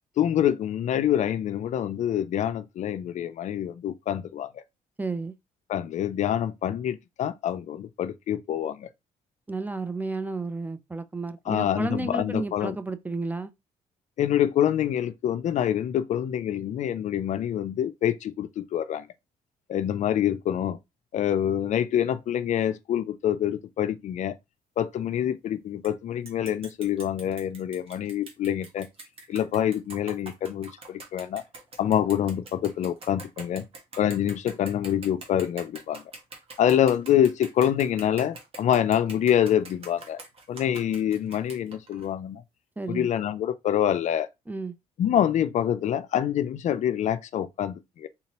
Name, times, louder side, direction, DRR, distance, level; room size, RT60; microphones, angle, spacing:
voice 1, 0.2-4.6 5.7-8.9 11.5-12.8 14.2-19.1 19.7-20.8 21.1-24.4 24.8-28.9 29.3-31.4 31.8-33.6 34.0-36.0 36.6-40.2 40.5-42.4 42.9-44.3 45.0-48.1, left 10 dB, 55° left, 0.4 m, -26 dB
voice 2, 5.0-5.4 9.5-13.5 42.8-43.1 44.5-44.7, right 3 dB, 10° right, 0.4 m, -32 dB
sound 1, 25.8-25.9 26.3-42.1, right 3 dB, 40° right, 1.3 m, -44 dB
3.7 x 2.8 x 2.9 m
cardioid pair, 80°, 15 cm